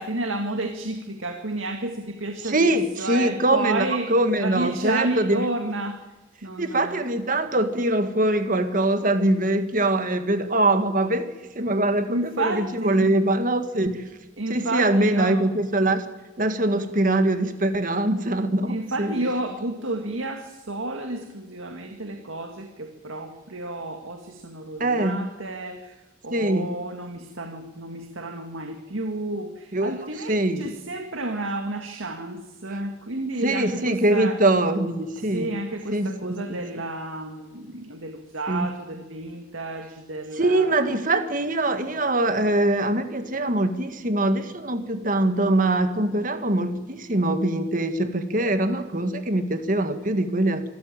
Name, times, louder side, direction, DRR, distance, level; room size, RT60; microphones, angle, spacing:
voice 1, 0.0-4.1 4.4-6.1 6.4-7.0 12.1-13.2 14.4-15.4 18.6-34.4 35.2-40.9, right 2 dB, 75° right, 5 dB, 1.9 m, -31 dB
voice 2, 2.4-5.4 6.6-14.1 14.5-16.0 16.4-19.1 24.8-25.2 26.3-26.7 29.7-29.9 30.3-30.7 33.4-35.5 35.9-36.6 38.5-38.7 40.3-50.7, right 1 dB, 40° right, 9 dB, 1.8 m, -23 dB
25.5 x 14.0 x 9.0 m, 1.2 s
head